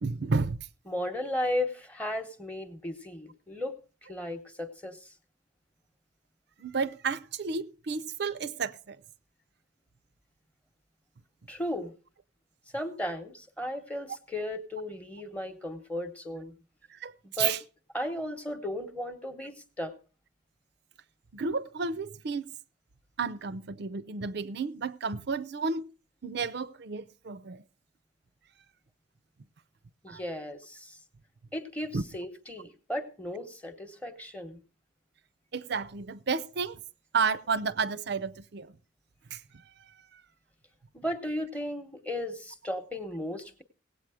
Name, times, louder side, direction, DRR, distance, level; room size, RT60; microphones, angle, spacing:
voice 1, 0.0-0.7 6.6-9.0 16.9-17.1 17.4-17.6 21.3-22.5 23.2-25.9 26.2-27.6 30.1-30.2 31.9-32.0 35.5-36.8 37.1-38.8 39.3-39.6 40.1-40.2, right 5 dB, 60° right, 0.5 m, -32 dB
voice 2, 0.9-3.8 4.1-5.1 11.5-11.9 12.7-16.5 17.2-17.6 17.9-19.9 30.0-31.0 31.5-34.6 40.9-43.6, left 1 dB, 5° left, 0.9 m, -35 dB
17.5 x 8.3 x 4.8 m
head